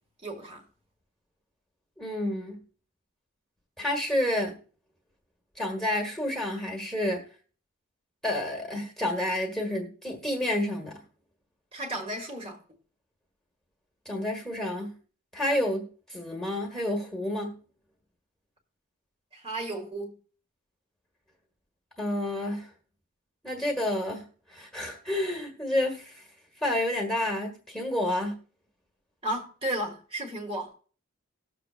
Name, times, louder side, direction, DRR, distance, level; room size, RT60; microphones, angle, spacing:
voice 1, 0.2-0.6 11.7-12.6 19.3-20.1 29.2-30.7, right 1 dB, 25° right, 1.5 m, -33 dB
voice 2, 2.0-2.6 3.8-4.6 5.6-7.2 8.2-11.0 14.0-14.9 15.3-17.6 22.0-22.7 23.4-26.2 26.6-28.4, left 1 dB, ahead, 1.5 m, -29 dB
19.0 x 6.9 x 2.5 m
head